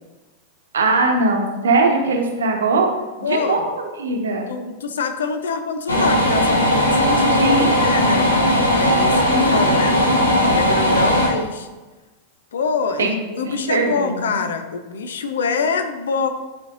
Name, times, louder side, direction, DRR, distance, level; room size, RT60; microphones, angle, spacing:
voice 1, 0.7-2.9 3.2-4.5 7.4-7.8 9.3-9.5 13.0-13.1 13.4-14.4, right 3 dB, 65° right, 2 dB, 1.1 m, -20 dB
voice 2, 3.2-3.7 4.5-8.3 8.7-10.1 10.5-11.7 12.5-16.3, left 5 dB, 65° left, 7 dB, 0.6 m, -25 dB
sound 1, 5.9-11.3, equal, 80° left, 1.2 m, -17 dB
10.0 x 4.4 x 2.6 m, 1.2 s
figure-of-eight pair, 90°, 0 cm